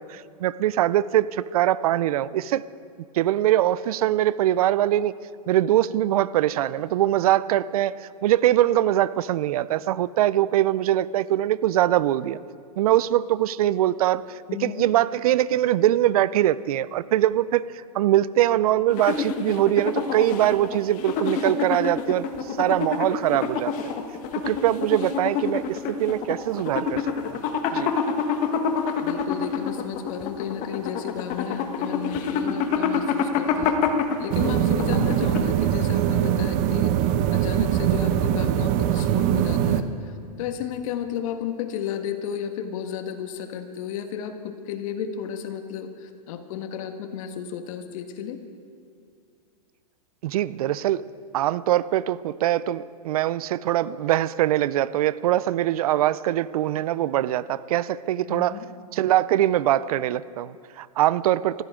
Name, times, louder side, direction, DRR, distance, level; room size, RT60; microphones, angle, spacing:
voice 1, 0.0-2.6 3.1-5.1 5.5-12.4 12.8-23.7 24.5-27.0 27.3-27.4 27.7-27.9 50.2-51.0 51.3-58.6 58.9-61.6, right 13 dB, 65° right, 18 dB, 0.5 m, -22 dB
voice 2, 14.5-14.9 29.0-33.8 34.2-36.9 37.3-40.1 40.4-48.4 58.3-58.6, left 8 dB, 55° left, 7 dB, 1.6 m, -33 dB
sound 1, 18.9-35.8, left 6 dB, 40° left, 1.4 m, -27 dB
sound 2, 34.3-39.8, right 11 dB, 40° right, 0.9 m, -22 dB
21.0 x 15.5 x 3.7 m, 2.3 s
hypercardioid pair, 125°, 21 cm